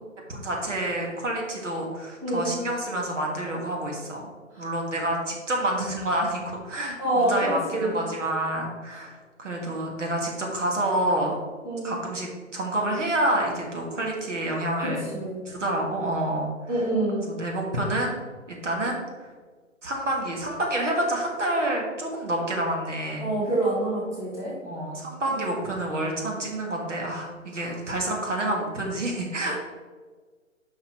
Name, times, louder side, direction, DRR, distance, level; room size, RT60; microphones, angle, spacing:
voice 1, 0.3-4.3 4.6-11.3 11.8-15.0 15.5-16.5 17.3-18.2 18.5-19.0 19.8-23.2 24.6-29.5, right 1 dB, 65° right, 0 dB, 1.8 m, -28 dB
voice 2, 2.2-2.5 4.5-4.7 7.0-7.9 8.9-9.0 11.6-11.9 14.8-15.4 16.7-17.2 23.2-24.5 25.3-25.4 27.5-27.8 29.4-29.5, right 2 dB, 10° right, -8 dB, 2.0 m, -27 dB
5.9 x 5.7 x 4.5 m, 1.4 s
figure-of-eight pair, 130°, 39 cm